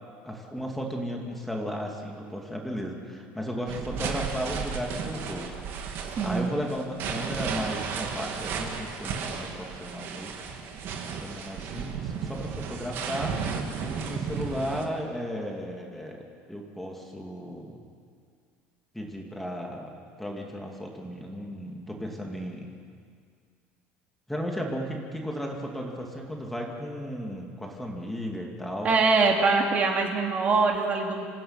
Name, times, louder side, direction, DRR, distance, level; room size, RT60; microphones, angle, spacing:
voice 1, 0.2-5.5 5.9-10.3 11.2-13.3 13.8-16.2 16.5-17.8 18.9-19.9 20.2-22.7 24.3-28.9, equal, 5° left, 0 dB, 2.5 m, -35 dB
sound 1, 3.7-14.9, right 6 dB, 50° right, 2.8 m, -34 dB
voice 2, 6.2-6.5 28.8-31.2, right 4 dB, 30° right, 1 dB, 2.6 m, -23 dB
27.0 x 16.5 x 8.9 m, 2.2 s
cardioid pair, 160°, 5 cm